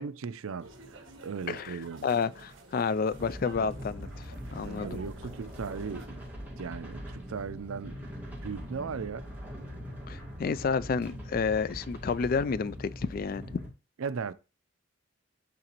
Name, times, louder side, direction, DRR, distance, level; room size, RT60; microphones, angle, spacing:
voice 1, 0.0-2.1 4.6-6.2 6.6-8.0 8.4-9.3 14.0-14.3, right 5 dB, 80° right, 0.5 m, -37 dB
sound 1, 0.6-6.1, right 2 dB, 65° right, 1.6 m, -51 dB
voice 2, 2.0-5.0 10.1-13.6, left 5 dB, 45° left, 0.3 m, -30 dB
sound 2, 3.1-13.7, equal, 10° right, 2.0 m, -42 dB
10.5 x 3.8 x 3.0 m
head